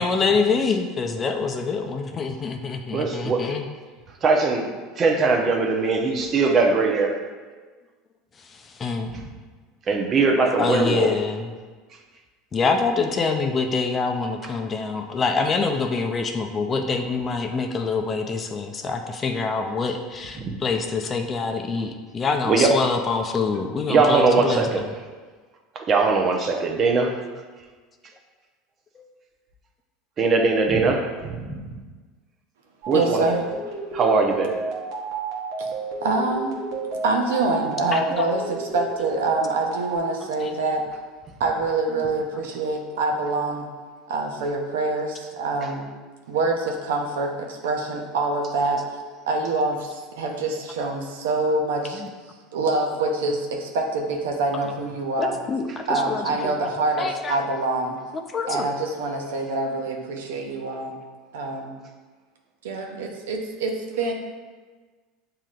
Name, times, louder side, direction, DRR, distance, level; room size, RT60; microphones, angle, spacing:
voice 1, 0.0-3.7 8.8-9.1 10.6-11.5 12.5-24.8 37.9-38.3 40.4-40.5 52.0-52.1 55.2-56.6 57.0-57.4 58.3-58.7, left 4 dB, 30° left, 5 dB, 0.5 m, -25 dB
voice 2, 2.9-3.6 4.2-7.2 9.9-11.1 20.4-20.5 22.4-22.8 23.9-24.8 25.7-27.1 30.2-31.6 32.9-33.3 33.9-34.5 55.7-55.8, right 4 dB, 40° right, 2 dB, 0.8 m, -21 dB
sound 1, 32.8-40.0, right 4 dB, 65° right, 1.0 m, -31 dB
voice 3, 32.9-33.4 35.6-35.7 36.0-36.5 37.0-40.8 41.4-43.7 44.1-45.9 46.3-48.8 49.3-52.0 52.5-55.4 55.9-58.0 58.5-60.9 61.3-61.8 62.6-64.1, right 2 dB, 85° right, 2 dB, 0.6 m, -25 dB
7.3 x 2.8 x 2.4 m, 1.4 s
hypercardioid pair, 95°, 0 cm